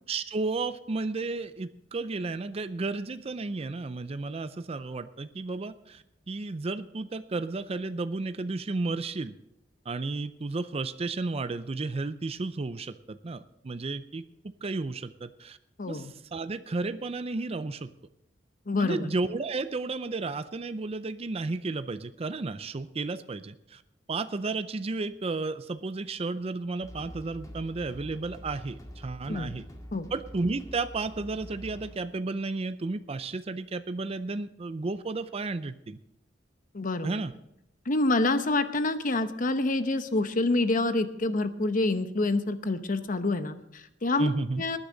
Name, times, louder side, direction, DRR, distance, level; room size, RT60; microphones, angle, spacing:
voice 1, 0.1-9.4 9.9-15.6 15.9-17.9 18.8-23.8 24.1-29.7 30.1-36.0 37.0-37.3 44.2-44.6, right 3 dB, 35° right, 12 dB, 0.5 m, -33 dB
voice 2, 15.8-16.1 18.7-19.1 29.3-29.5 29.9-30.1 36.7-37.2 37.9-44.3 44.6-44.8, left 2 dB, 45° left, 10 dB, 0.9 m, -27 dB
sound 1, 26.8-31.9, equal, 20° left, 2.0 m, -45 dB
19.5 x 10.0 x 3.9 m, 0.82 s
head